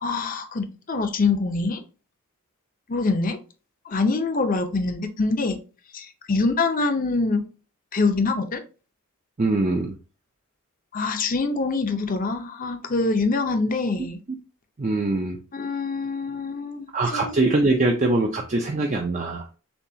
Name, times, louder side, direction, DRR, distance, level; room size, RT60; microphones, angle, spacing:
voice 1, 0.0-1.8 2.9-3.4 3.8-5.6 5.9-7.4 7.9-8.6 10.9-14.2 15.5-16.9 17.2-17.3, left 3 dB, 40° left, 6 dB, 0.6 m, -24 dB
voice 2, 9.4-9.9 14.8-15.4 16.9-19.5, right 2 dB, 35° right, 2 dB, 0.5 m, -22 dB
6.9 x 2.3 x 2.7 m, 0.34 s
head